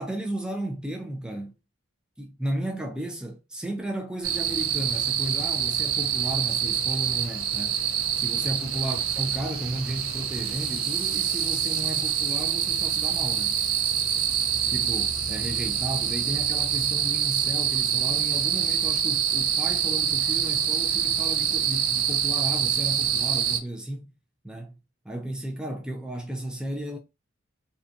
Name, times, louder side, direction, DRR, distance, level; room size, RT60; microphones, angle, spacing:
voice 1, 0.0-1.6 2.2-7.8 8.1-13.5 14.7-24.1 24.4-24.7 25.1-27.0, right 1 dB, 5° right, 0.3 m, -34 dB
sound 1, 4.2-23.6, right 8 dB, 85° right, 0.5 m, -26 dB
2.6 x 2.2 x 2.5 m
head